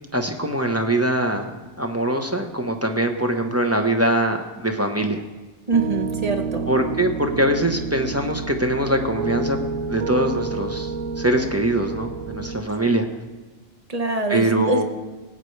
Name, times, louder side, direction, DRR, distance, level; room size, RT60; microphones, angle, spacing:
voice 1, 0.1-1.5 1.8-5.2 6.7-9.6 9.9-13.0 14.3-14.8, right 1 dB, 15° right, 4 dB, 0.8 m, -22 dB
voice 2, 5.7-6.7 13.9-14.8, right 3 dB, 30° right, 4 dB, 1.1 m, -23 dB
Piano, 5.7-12.6, right 4 dB, 85° right, 1.0 m, -29 dB
19.0 x 9.1 x 3.3 m, 1.3 s
omnidirectional pair, 1.3 m